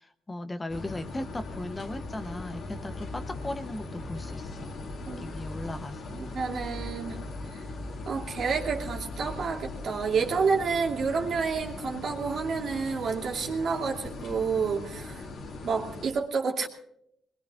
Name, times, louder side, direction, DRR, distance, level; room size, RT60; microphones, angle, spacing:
voice 1, 0.0-4.7 5.2-6.1, left 1 dB, 20° left, 9 dB, 0.9 m, -37 dB
sound 1, 0.7-16.1, left 2 dB, 65° left, 2.3 m, -39 dB
voice 2, 6.1-7.2 7.5-7.6 8.1-15.3 15.6-16.7, right 5 dB, 60° right, -1 dB, 2.7 m, -29 dB
23.5 x 21.0 x 2.5 m, 0.75 s
cardioid pair, 90°, 0 cm